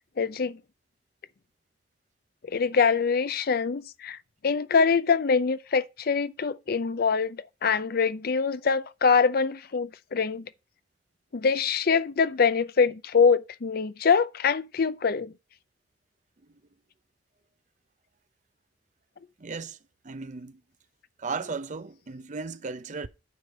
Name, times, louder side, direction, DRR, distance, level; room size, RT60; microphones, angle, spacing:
voice 1, 0.2-0.6 2.5-4.2 4.4-10.5 11.3-15.3, left 5 dB, 55° left, 0.5 m, -24 dB
voice 2, 19.4-19.8 20.0-20.6 21.2-23.1, right 4 dB, 40° right, 0.6 m, -35 dB
9.4 x 5.0 x 5.4 m
head